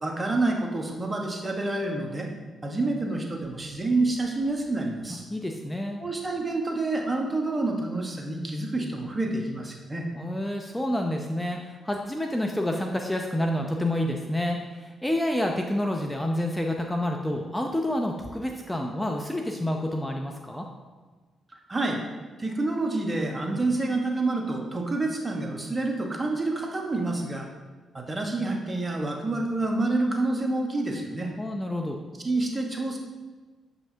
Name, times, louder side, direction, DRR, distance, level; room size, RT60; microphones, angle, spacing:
voice 1, 0.0-2.3 2.6-5.3 6.0-10.1 21.7-22.0 22.4-27.5 27.9-31.3 32.2-33.0, right 2 dB, 25° right, 1 dB, 1.2 m, -28 dB
voice 2, 5.1-6.0 10.1-20.7 31.4-32.0, left 1 dB, 10° left, 2 dB, 0.6 m, -28 dB
7.1 x 5.5 x 2.8 m, 1.4 s
supercardioid pair, 55°, 0 cm